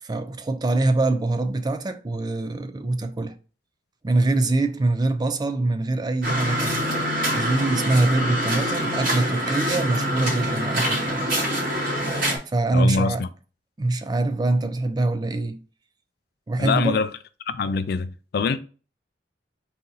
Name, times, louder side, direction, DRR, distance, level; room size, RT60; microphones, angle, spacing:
voice 1, 0.0-3.4 4.0-11.3 12.5-13.2 13.8-15.6 16.5-17.0, right 2 dB, 20° right, 0.3 m, -24 dB
sound 1, 6.2-12.4, equal, 50° right, 2.4 m, -25 dB
voice 2, 12.7-13.3 16.6-17.1 17.5-18.6, left 5 dB, 55° left, 0.3 m, -24 dB
4.1 x 2.7 x 3.8 m
head